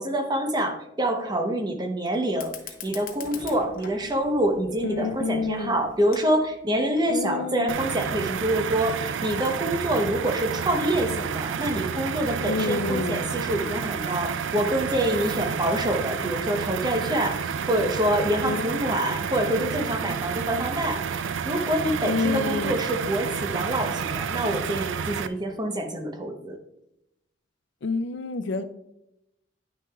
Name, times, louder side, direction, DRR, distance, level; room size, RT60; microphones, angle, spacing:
voice 1, 0.0-26.6, right 1 dB, 20° right, 4 dB, 0.8 m, -26 dB
Fire, 2.3-7.3, left 6 dB, 50° left, 0.8 m, -44 dB
voice 2, 4.8-5.7 7.1-7.7 12.5-13.2 18.4-18.6 19.5-19.7 22.0-22.8 27.8-28.6, left 3 dB, 70° left, 11 dB, 0.5 m, -28 dB
sound 1, 7.7-25.3, right 7 dB, 85° right, 0.4 m, -30 dB
9.6 x 6.1 x 2.3 m, 0.83 s
head